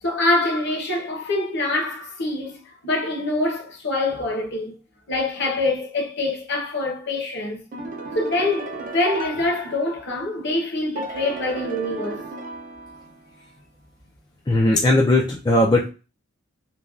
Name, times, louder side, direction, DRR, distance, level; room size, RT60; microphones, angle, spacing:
voice 1, 0.0-4.8 5.1-7.6 8.1-12.2, left 2 dB, 55° left, 0.9 m, -25 dB
sound 1, 7.7-10.3 11.0-13.4, right 2 dB, 40° right, 0.5 m, -35 dB
voice 2, 14.5-15.9, left 1 dB, 20° left, 0.3 m, -18 dB
3.1 x 2.2 x 2.4 m
head